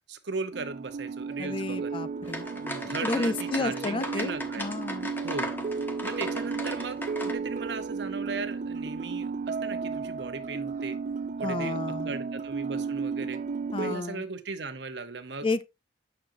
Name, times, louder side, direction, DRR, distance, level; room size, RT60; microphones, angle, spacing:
voice 1, 0.1-1.9 2.5-4.7 5.2-5.5 6.0-11.0 11.4-11.8 12.0-13.4 13.8-15.5, right 4 dB, 65° right, 0.9 m, -37 dB
sound 1, 0.5-14.0, right 5 dB, 40° right, 0.4 m, -34 dB
voice 2, 1.4-2.5 2.8-5.1 11.4-12.1 13.7-14.2 15.4-15.6, left 3 dB, 30° left, 0.4 m, -31 dB
sound 2, 2.2-7.3, equal, 10° left, 1.1 m, -37 dB
9.0 x 6.3 x 2.7 m
head